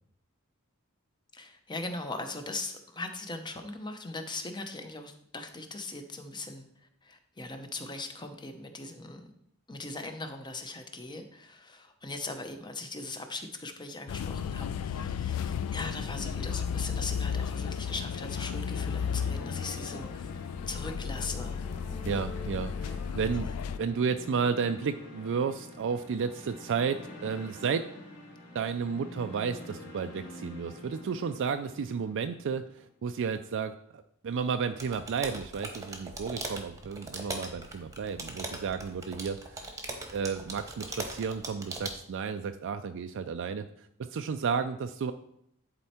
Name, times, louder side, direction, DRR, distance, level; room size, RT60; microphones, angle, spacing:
voice 1, 1.3-6.6 7.0-9.3 9.7-21.7, left 2 dB, 20° left, 6 dB, 0.8 m, -40 dB
sound 1, 14.1-23.8, left 7 dB, 85° left, 0.3 m, -34 dB
sound 2, 18.6-32.7, left 1 dB, 50° left, 2.9 m, -47 dB
voice 2, 22.0-23.5 23.8-27.9 28.5-39.7 40.1-43.7 44.0-45.1, right 6 dB, 60° right, 8 dB, 0.4 m, -32 dB
sound 3, 34.8-42.0, right 2 dB, 15° right, 1.1 m, -40 dB
10.5 x 4.4 x 4.3 m, 0.72 s
head